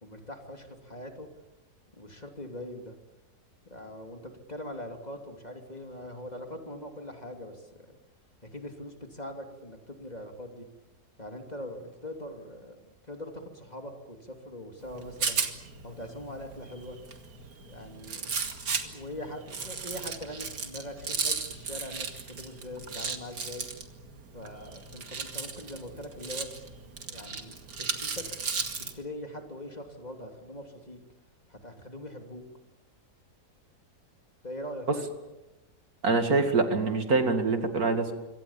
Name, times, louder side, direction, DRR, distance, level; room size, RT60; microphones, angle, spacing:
voice 1, 0.0-1.3 1.9-3.0 3.7-8.0 8.4-10.7 11.2-12.8 13.1-15.4 15.8-17.0 17.6-18.3 18.8-23.7 24.3-26.7 27.0-28.2 28.8-31.0 31.5-32.4 34.4-35.1, left 1 dB, 25° left, 4 dB, 3.0 m, -42 dB
Rattle, 14.8-29.0, right 5 dB, 85° right, 2.8 m, -36 dB
voice 2, 36.0-38.1, right 3 dB, 65° right, 6 dB, 2.8 m, -25 dB
26.5 x 24.5 x 7.3 m, 1.0 s
omnidirectional pair, 1.7 m